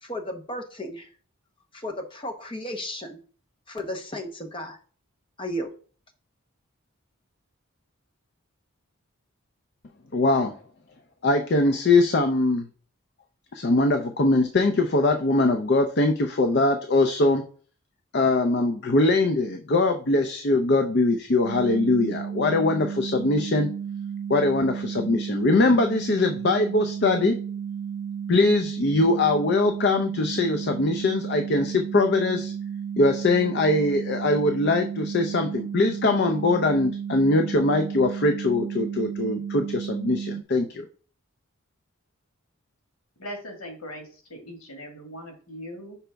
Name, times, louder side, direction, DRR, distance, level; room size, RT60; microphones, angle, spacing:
voice 1, 0.0-1.1 1.7-3.2 3.7-4.8 5.4-5.7, equal, 25° left, 2 dB, 0.9 m, -34 dB
voice 2, 10.1-10.6 11.2-12.7 13.5-17.4 18.1-23.7 24.3-27.4 28.3-32.5 33.0-40.9, left 2 dB, 50° left, 6 dB, 0.5 m, -22 dB
sound 1, 21.4-40.4, right 7 dB, 85° right, 0.5 m, -33 dB
voice 3, 43.2-46.0, equal, 80° left, 3 dB, 1.8 m, -40 dB
5.7 x 5.0 x 3.4 m, 0.41 s
head